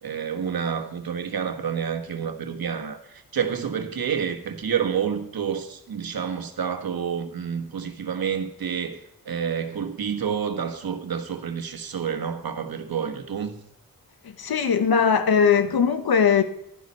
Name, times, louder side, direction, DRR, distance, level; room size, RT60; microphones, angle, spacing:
voice 1, 0.0-13.6, right 7 dB, 75° right, 1.4 m, -29 dB
voice 2, 14.4-16.4, left 6 dB, 85° left, 1.1 m, -20 dB
15.0 x 11.5 x 4.2 m
wide cardioid pair, 125°, 36 cm